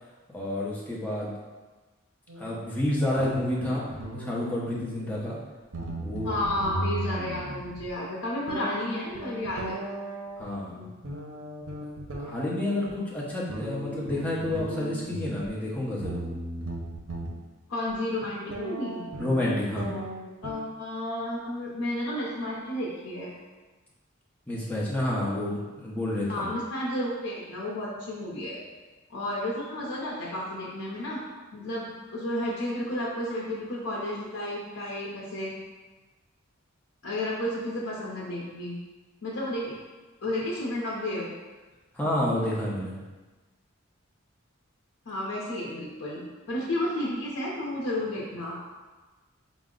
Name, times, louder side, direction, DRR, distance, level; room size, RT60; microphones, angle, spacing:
voice 1, 0.3-1.3 2.4-3.8 4.1-5.4 6.0-6.4 10.4-10.9 12.2-16.3 19.2-20.0 24.5-26.5 41.9-43.0, left 1 dB, 10° left, -6 dB, 0.7 m, -29 dB
sound 1, 2.3-2.6 3.2-5.3 5.6-7.9 8.5-10.5 11.0-12.9 13.5-15.5 16.0-17.3 17.9-18.0 18.5-20.5, right 1 dB, 75° right, 0.6 m, -36 dB
voice 2, 6.2-9.8 10.7-11.0 17.7-19.0 20.4-23.3 25.4-25.5 26.3-28.6 29.1-31.2 31.5-35.5 37.0-38.8 39.2-39.7 40.2-41.3 45.1-48.6, left 1 dB, 75° left, -5 dB, 0.6 m, -32 dB
4.3 x 2.0 x 3.7 m, 1.2 s
head